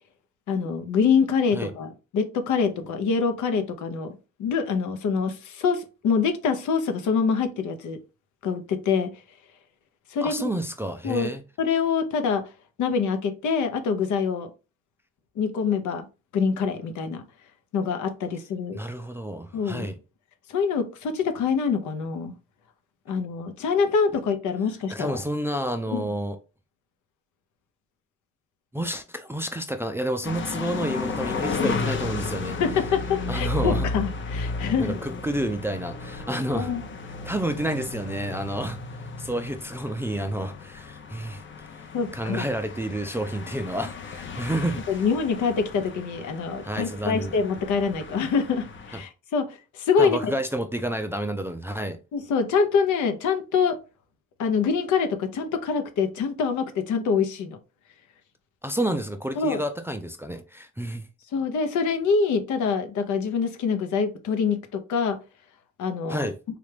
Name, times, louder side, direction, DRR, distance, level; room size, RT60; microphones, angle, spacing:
voice 1, 0.5-8.0 8.4-9.1 10.1-10.5 11.0-11.3 11.6-12.4 12.8-14.5 15.4-16.1 16.3-17.2 17.7-18.8 19.5-19.9 20.5-22.3 23.1-25.2 25.9-26.0 32.6-35.0 36.5-36.8 41.9-42.4 44.9-50.3 52.1-53.8 54.4-57.6 59.4-59.6 61.3-65.2 65.8-66.3, left 5 dB, 75° left, 0.7 m, -25 dB
voice 2, 10.2-11.4 18.7-20.0 24.9-26.4 28.7-32.6 33.3-33.9 34.8-36.7 37.2-38.8 39.2-41.4 42.1-45.1 46.6-47.4 48.9-49.0 50.0-52.0 58.6-61.0 66.1-66.4, right 1 dB, 10° right, 0.3 m, -30 dB
sound 1, 30.2-49.0, left 3 dB, 40° left, 0.6 m, -34 dB
3.3 x 2.4 x 3.2 m
cardioid pair, 90°, 30 cm